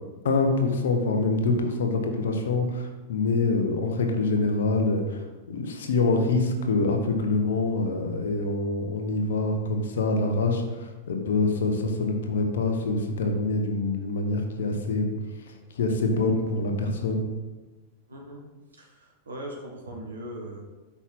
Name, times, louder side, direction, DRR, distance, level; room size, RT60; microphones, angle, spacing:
voice 1, 0.2-15.1 15.5-17.2, left 3 dB, 60° left, 4 dB, 1.0 m, -25 dB
voice 2, 18.1-18.4 18.7-20.6, right 1 dB, 70° right, 0 dB, 1.4 m, -39 dB
5.6 x 4.2 x 5.9 m, 1.2 s
figure-of-eight pair, 90°, 0 cm